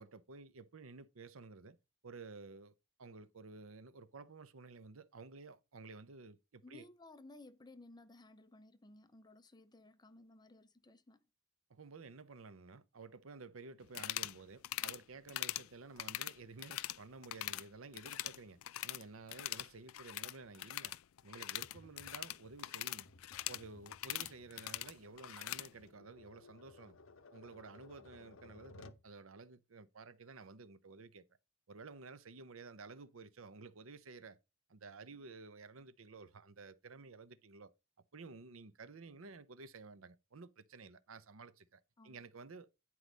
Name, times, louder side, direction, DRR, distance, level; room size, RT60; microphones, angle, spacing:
voice 1, 0.0-1.8 2.0-6.9 11.7-20.9 21.2-23.1 23.5-27.0 27.3-31.3 31.7-34.4 34.7-37.7 38.1-42.7, right 4 dB, 80° right, 0.8 m, -53 dB
voice 2, 6.6-11.2 42.0-42.2, left 2 dB, 20° left, 0.7 m, -58 dB
sound 1, 13.9-14.4 14.6-15.0 15.3-15.7 16.0-17.0 17.2-17.6 17.9-19.0 19.3-25.7, left 15 dB, 85° left, 0.4 m, -42 dB
Tap, 21.6-29.1, left 2 dB, 70° left, 0.8 m, -60 dB
9.9 x 4.8 x 5.2 m
head